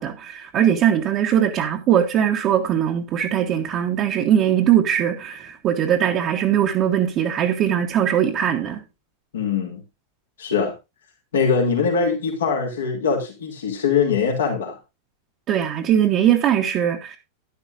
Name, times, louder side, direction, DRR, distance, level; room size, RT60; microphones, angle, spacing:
voice 1, 0.0-8.8 15.5-17.2, right 10 dB, 35° right, 1.4 m, -20 dB
voice 2, 9.3-9.8 10.4-10.7 11.3-14.8, left 5 dB, 65° left, 3.1 m, -22 dB
11.5 x 11.5 x 2.6 m
figure-of-eight pair, 90°, 0 cm